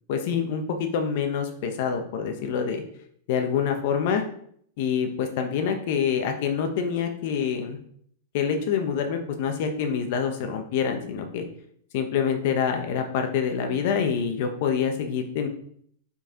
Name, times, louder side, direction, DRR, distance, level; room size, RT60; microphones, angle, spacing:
voice 1, 0.1-2.8 3.3-4.2 4.8-7.8 8.3-11.4 11.9-15.5, left 7 dB, 50° left, 5 dB, 0.9 m, -26 dB
5.8 x 4.4 x 3.7 m, 0.63 s
supercardioid pair, 160°, 0 cm